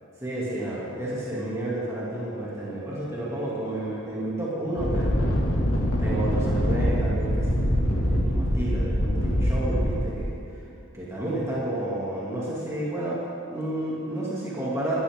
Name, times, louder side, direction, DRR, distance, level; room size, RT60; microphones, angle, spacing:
voice 1, 0.2-5.2 6.0-10.4 10.9-13.2 13.5-15.0, right 1 dB, 15° right, -8 dB, 2.4 m, -31 dB
sound 1, 4.8-10.1, equal, 70° left, 2.2 m, -24 dB
18.5 x 13.0 x 3.7 m, 2.6 s
head